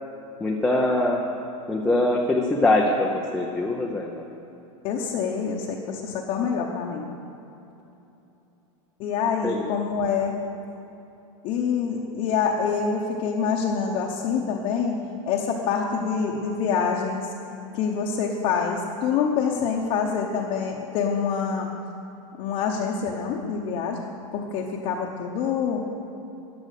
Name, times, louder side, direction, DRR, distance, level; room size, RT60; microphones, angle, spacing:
voice 1, 0.4-1.2 1.7-4.3 9.4-9.7, left 2 dB, 5° left, -2 dB, 0.5 m, -23 dB
voice 2, 4.8-7.0 9.0-10.4 11.4-15.0 15.3-17.3 17.7-21.7 22.4-24.0 24.3-25.8, left 6 dB, 30° left, -2 dB, 0.8 m, -26 dB
14.0 x 9.4 x 6.6 m, 2.9 s
supercardioid pair, 175°, 17 cm